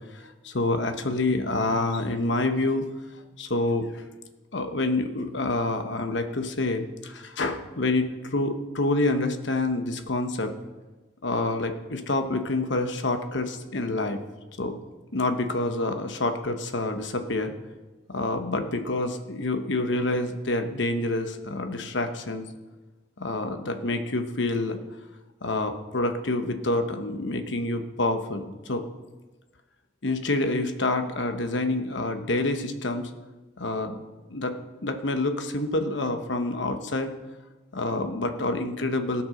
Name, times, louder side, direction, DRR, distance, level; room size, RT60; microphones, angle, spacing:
voice 1, 0.1-2.9 3.4-4.0 4.5-10.5 11.2-14.2 14.6-14.8 15.1-17.5 18.1-22.5 23.2-24.8 25.4-28.8 30.0-33.0 33.6-34.0 34.3-37.1 37.7-39.2, left 2 dB, 65° left, 7 dB, 1.1 m, -27 dB
16.0 x 6.0 x 6.4 m, 1.2 s
head